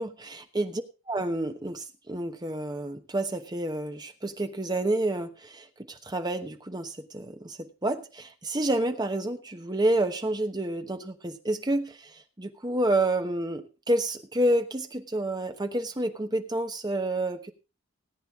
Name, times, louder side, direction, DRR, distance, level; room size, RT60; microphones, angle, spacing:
voice 1, 0.0-0.8 1.1-17.5, right 1 dB, 20° right, 7 dB, 1.0 m, -29 dB
18.0 x 9.0 x 3.7 m, 0.31 s
head